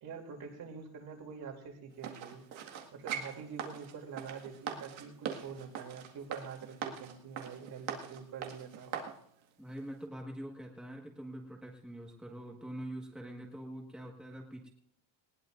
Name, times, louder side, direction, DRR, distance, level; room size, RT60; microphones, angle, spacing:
voice 1, 0.0-2.4 2.9-9.0, right 6 dB, 50° right, 2 dB, 3.1 m, -46 dB
sound 1, 2.0-9.2 9.7-9.8, right 8 dB, 75° right, 2.0 m, -42 dB
voice 2, 9.6-14.7, right 1 dB, ahead, -1 dB, 1.5 m, -44 dB
20.0 x 19.0 x 2.6 m, 0.72 s
cardioid pair, 165°, 46 cm